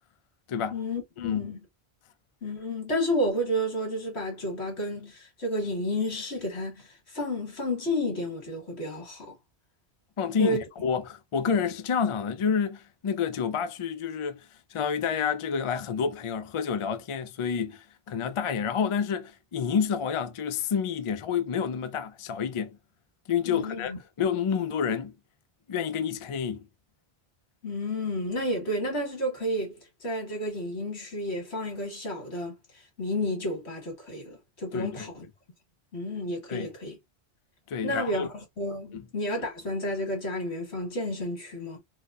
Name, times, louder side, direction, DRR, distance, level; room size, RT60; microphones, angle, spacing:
voice 1, 0.7-1.6 2.4-9.4 10.4-10.6 23.5-24.0 27.6-35.3 35.9-37.0 37.8-41.8, left 1 dB, 85° left, 1.9 m, -31 dB
voice 2, 10.2-14.5 14.7-22.8 23.3-25.1 25.7-26.7 34.7-35.1 36.5-36.7 37.7-38.3 38.9-39.0, left 7 dB, 55° left, 0.3 m, -29 dB
4.0 x 2.1 x 2.4 m
omnidirectional pair, 1.1 m